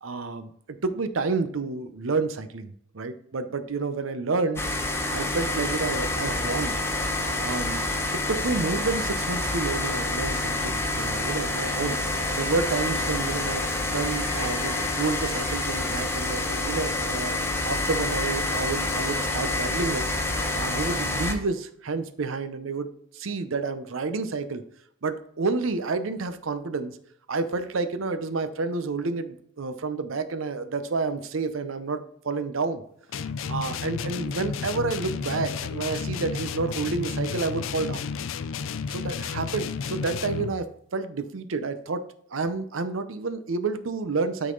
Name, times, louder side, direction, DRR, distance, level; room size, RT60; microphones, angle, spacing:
voice 1, 0.0-0.5 0.8-4.6 5.1-6.8 7.4-7.8 8.3-12.0 12.3-13.6 13.9-20.1 20.5-24.6 25.0-27.0 27.3-32.8 33.5-38.0 38.9-40.7 40.9-42.0 42.3-44.5, right 4 dB, 80° right, 11 dB, 0.7 m, -29 dB
sound 1, 4.6-21.3, left 2 dB, 15° left, 0.8 m, -27 dB
sound 2, 33.1-40.6, left 6 dB, 70° left, 0.4 m, -32 dB
9.2 x 4.0 x 3.9 m, 0.68 s
head